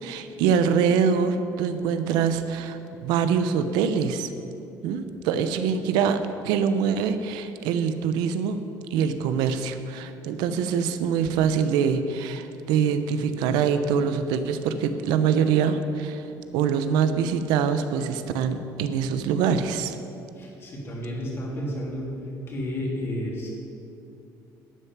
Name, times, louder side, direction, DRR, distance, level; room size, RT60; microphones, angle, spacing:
voice 1, 0.0-4.3 4.8-8.6 8.9-16.3 16.5-20.0, right 7 dB, 90° right, 10 dB, 0.8 m, -24 dB
voice 2, 20.4-22.1 22.5-23.5, equal, 35° left, -2 dB, 3.2 m, -31 dB
12.0 x 6.7 x 9.4 m, 2.7 s
cardioid pair, 140°, 7 cm